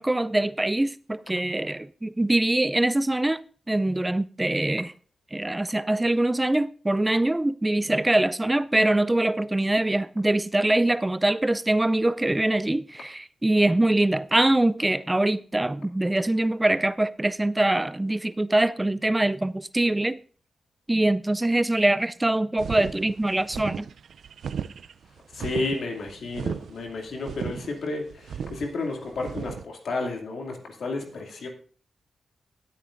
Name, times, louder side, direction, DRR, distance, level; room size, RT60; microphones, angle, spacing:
voice 1, 0.0-4.9 5.3-20.2 20.9-23.9, right 1 dB, 15° right, 0.4 m, -23 dB
sound 1, 22.6-29.6, right 7 dB, 85° right, 0.4 m, -35 dB
voice 2, 25.3-31.5, left 3 dB, 80° left, 2.4 m, -32 dB
19.0 x 8.6 x 2.5 m
cardioid pair, 80°, 0 cm